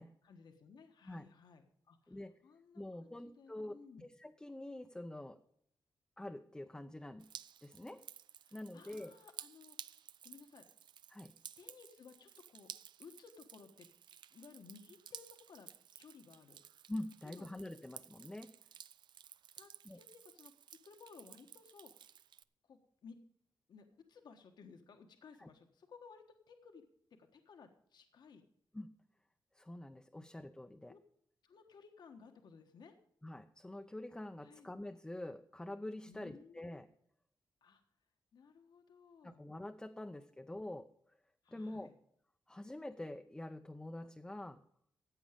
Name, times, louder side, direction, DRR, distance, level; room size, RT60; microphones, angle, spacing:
voice 1, 0.2-4.0 8.4-10.7 11.6-12.7 13.0-13.9 14.3-15.7 15.9-16.6 17.4-17.5 19.6-22.1 22.6-23.2 23.7-26.8 27.1-28.4 30.9-31.0 31.4-33.0 34.4-34.7 36.1-36.8 37.6-37.8 38.3-39.4 41.4-41.9, left 5 dB, 65° left, 5 dB, 1.3 m, -58 dB
voice 2, 2.1-2.4 2.8-3.8 4.2-5.4 6.2-7.3 7.6-8.0 8.5-9.1 11.1-11.3 16.9-18.5 19.8-20.0 25.4-25.5 28.7-28.9 29.5-31.0 33.2-36.9 39.2-41.2 41.5-41.9 42.5-44.6, left 1 dB, 10° left, 6 dB, 0.6 m, -46 dB
Drip, 7.2-22.4, right 9 dB, 75° right, 0.4 m, -55 dB
14.5 x 8.6 x 5.1 m, 0.68 s
wide cardioid pair, 140°, 8 cm